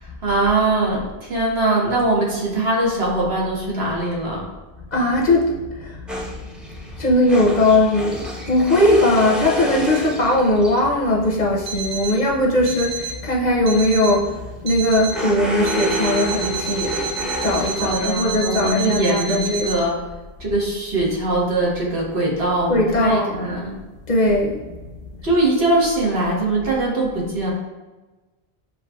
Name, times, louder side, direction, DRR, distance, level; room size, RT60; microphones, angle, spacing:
voice 1, 0.2-4.4 17.8-20.0 20.4-23.7 25.2-27.5, right 2 dB, 70° right, -4 dB, 1.4 m, -21 dB
voice 2, 4.9-5.9 7.0-14.3 14.6-17.0 17.4-19.7 22.7-23.6 24.1-24.6, left 1 dB, 50° left, -2 dB, 0.7 m, -19 dB
sound 1, 6.1-11.0 14.1-18.3, equal, ahead, 0.5 m, -29 dB
Alarm, 11.7-12.2 12.7-13.2 13.7-14.2 14.7-15.2 15.7-19.8, right 5 dB, 85° right, 0.9 m, -30 dB
7.7 x 2.7 x 2.2 m, 1.2 s
omnidirectional pair, 1.1 m